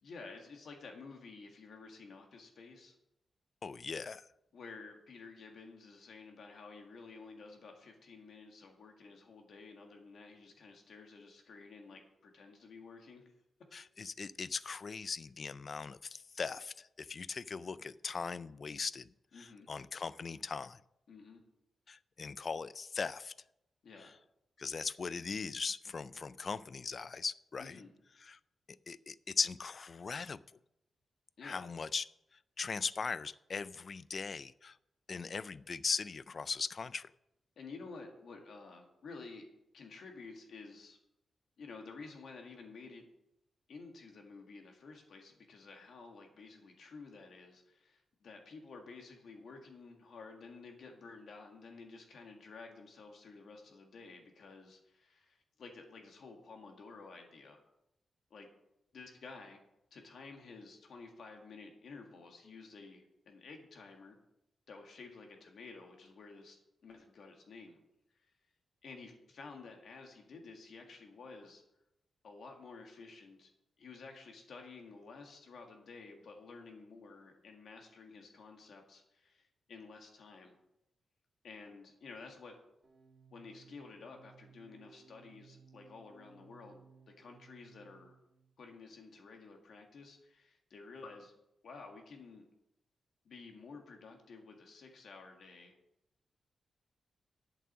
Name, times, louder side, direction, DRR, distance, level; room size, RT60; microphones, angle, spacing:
voice 1, 0.0-2.9 4.5-13.3 19.3-19.7 21.1-21.4 23.8-24.1 27.6-27.9 31.4-31.7 37.6-39.5 39.7-41.0 41.6-43.1 43.7-57.6 58.3-58.5 58.9-59.6 59.9-64.2 64.7-67.8 68.2-68.3 68.8-71.6 72.2-73.5 73.8-80.6 81.4-82.6 83.3-88.1 88.6-91.3 91.6-92.4 93.3-95.8, left 4 dB, 65° left, 3 dB, 1.8 m, -52 dB
voice 2, 3.6-4.3 13.7-19.1 19.4-20.8 21.9-23.3 24.0-24.1 24.6-27.8 28.2-28.4 28.9-30.4 31.4-32.0 32.6-34.8 35.1-37.1, left 5 dB, 35° left, 18 dB, 0.3 m, -39 dB
sound 1, 82.8-88.5, right 5 dB, 25° right, 2.5 m, -61 dB
8.5 x 7.3 x 7.3 m, 0.86 s
wide cardioid pair, 160°, 0 cm